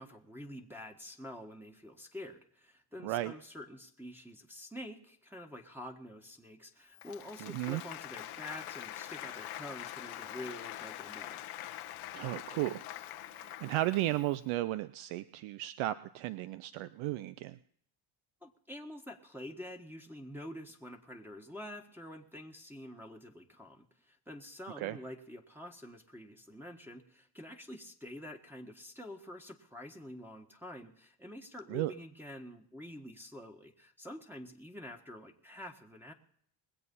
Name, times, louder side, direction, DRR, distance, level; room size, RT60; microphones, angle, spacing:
voice 1, 0.0-11.4 18.4-36.1, left 1 dB, 5° right, 0 dB, 1.7 m, -47 dB
voice 2, 3.0-3.3 7.4-7.8 12.1-12.8 13.4-17.6 24.8-25.0 31.7-31.9, right 16 dB, 85° right, 15 dB, 0.7 m, -34 dB
Applause, 6.9-14.3, left 13 dB, 90° left, 1.2 m, -44 dB
21.5 x 7.9 x 5.5 m, 0.65 s
cardioid pair, 85°, 47 cm